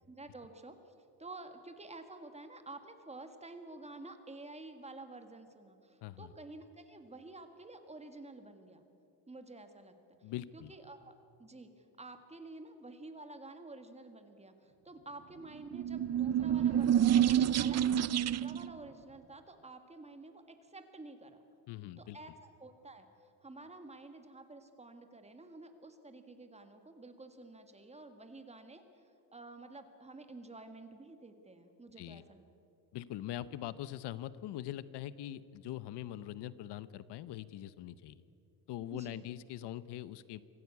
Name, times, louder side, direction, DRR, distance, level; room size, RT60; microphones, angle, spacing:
voice 1, 0.1-0.8 1.2-8.8 9.3-10.0 10.5-11.1 11.4-21.4 22.0-23.1 23.4-28.8 29.3-32.4 38.9-39.3, right 2 dB, 15° right, 7 dB, 1.8 m, -50 dB
voice 2, 6.0-6.3 10.2-10.7 21.7-22.2 32.0-32.2 32.9-38.2 38.7-40.4, left 13 dB, 80° left, 16 dB, 0.8 m, -42 dB
sound 1, 15.6-18.7, right 10 dB, 40° right, 0.5 m, -28 dB
25.0 x 16.0 x 8.4 m, 2.7 s
cardioid pair, 130°, 40 cm